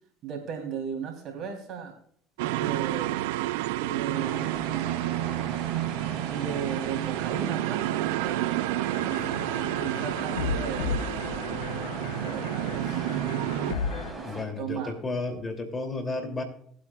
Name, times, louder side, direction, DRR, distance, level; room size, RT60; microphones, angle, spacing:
voice 1, 0.2-2.0 2.4-3.2 3.8-5.1 6.3-8.5 9.0-10.9 12.0-13.0 13.9-15.0, right 7 dB, 55° right, 2 dB, 3.5 m, -36 dB
sound 1, 2.4-13.7, right 16 dB, 80° right, 0.4 m, -30 dB
sound 2, 4.1-14.4, right 2 dB, 15° right, 5.6 m, -40 dB
sound 3, 8.9-14.1, left 6 dB, 85° left, 0.9 m, -35 dB
voice 2, 14.2-16.4, left 3 dB, 25° left, 4 dB, 2.9 m, -32 dB
19.5 x 8.6 x 2.4 m, 0.62 s
hypercardioid pair, 75°, 0 cm